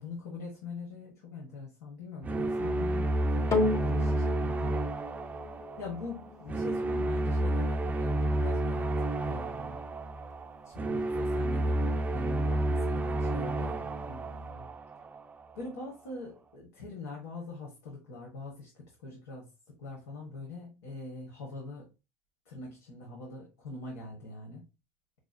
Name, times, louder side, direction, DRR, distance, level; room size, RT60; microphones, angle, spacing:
voice 1, 0.0-4.8 5.8-9.8 10.6-14.7 15.5-19.5 19.8-21.9 22.4-24.6, left 3 dB, 85° left, -1 dB, 1.1 m, -43 dB
sound 1, 2.2-15.3, right 1 dB, 20° right, 0.3 m, -30 dB
sound 2, 3.5-12.1 12.8-12.9, left 2 dB, 35° left, 0.8 m, -37 dB
4.8 x 2.5 x 2.2 m, 0.28 s
supercardioid pair, 85°, 8 cm